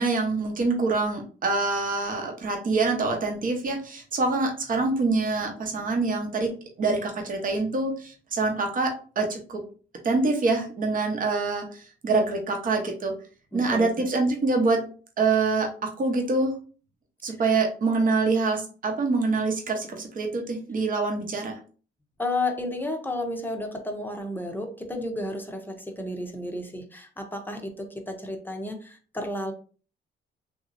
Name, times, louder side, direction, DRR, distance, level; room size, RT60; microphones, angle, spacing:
voice 1, 0.0-6.5 6.8-9.6 10.0-13.1 13.5-14.8 15.2-16.5 17.2-21.6, right 3 dB, 45° right, 2 dB, 0.9 m, -25 dB
voice 2, 13.5-14.1 22.2-29.5, left 2 dB, 10° left, 3 dB, 0.7 m, -32 dB
3.1 x 2.7 x 2.5 m, 0.39 s
cardioid pair, 90°, 20 cm